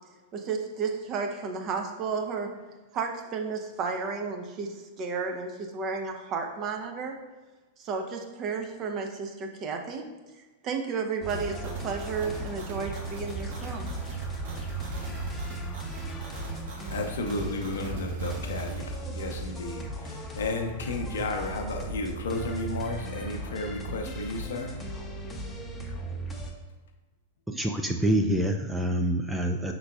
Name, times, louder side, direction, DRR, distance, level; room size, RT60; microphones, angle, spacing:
voice 1, 0.1-2.6 2.9-7.2 7.8-13.9, right 5 dB, 35° right, 3 dB, 0.7 m, -33 dB
sound 1, 11.2-26.5, right 2 dB, 10° left, 0.7 m, -37 dB
sound 2, 11.3-18.8, right 2 dB, 60° right, 1.1 m, -39 dB
voice 2, 16.9-24.8, left 2 dB, 70° left, 4 dB, 0.6 m, -33 dB
voice 3, 27.5-29.7, right 1 dB, 10° right, 4 dB, 0.3 m, -26 dB
5.5 x 3.8 x 2.3 m, 1.2 s
hypercardioid pair, 100°, 0 cm